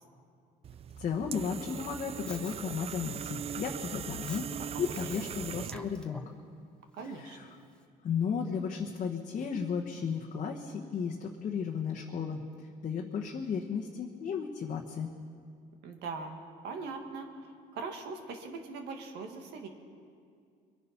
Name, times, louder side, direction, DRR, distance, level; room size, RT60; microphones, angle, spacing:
sound 1, 0.6-6.0, right 8 dB, 35° right, 0.3 m, -40 dB
voice 1, 1.0-6.3 7.0-7.5 8.0-15.1, left 6 dB, 45° left, 0 dB, 1.1 m, -34 dB
Respiratory sounds, 2.3-2.6 4.1-4.4 4.9-5.2 5.6-6.4 7.0-7.1, left 1 dB, 5° left, 1.2 m, -48 dB
voice 2, 4.7-5.3 6.9-7.4 15.8-19.7, right 4 dB, 85° right, 4 dB, 1.8 m, -41 dB
23.5 x 9.8 x 5.8 m, 2.3 s
cardioid pair, 110°, 17 cm